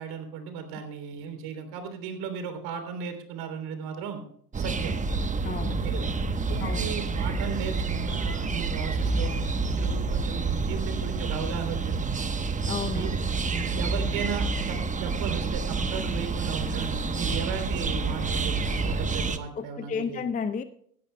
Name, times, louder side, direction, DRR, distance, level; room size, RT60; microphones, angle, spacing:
voice 1, 0.0-4.2 4.6-5.0 5.7-6.2 6.5-12.4 12.8-13.4 13.7-20.2, right 6 dB, 60° right, 7 dB, 3.3 m, -36 dB
sound 1, 4.5-19.4, right 4 dB, 15° right, 1.0 m, -28 dB
voice 2, 5.4-5.8 6.6-6.9 12.6-13.7 19.6-20.6, left 6 dB, 20° left, 12 dB, 0.6 m, -33 dB
17.5 x 13.0 x 2.2 m, 0.64 s
hypercardioid pair, 90°, 44 cm